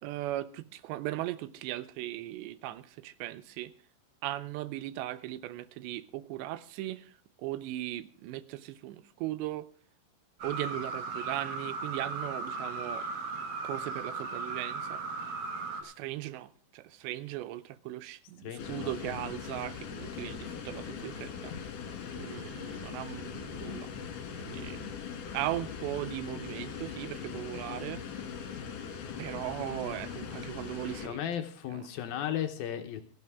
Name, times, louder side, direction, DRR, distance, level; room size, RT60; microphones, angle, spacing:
voice 1, 0.0-3.7 4.2-7.1 7.4-9.7 10.4-13.1 13.6-15.0 15.8-21.5 22.2-23.9 24.5-25.0 25.3-28.0 29.2-31.2 31.7-31.9, right 15 dB, 85° right, 15 dB, 3.0 m, -38 dB
sound 1, 10.4-15.8, right 4 dB, 65° right, 3.3 m, -37 dB
voice 2, 18.4-19.3 31.0-33.0, left 10 dB, 70° left, 7 dB, 2.5 m, -36 dB
sound 2, 18.6-31.1, left 7 dB, 55° left, 3.4 m, -40 dB
17.0 x 15.0 x 3.6 m, 0.39 s
omnidirectional pair, 5.0 m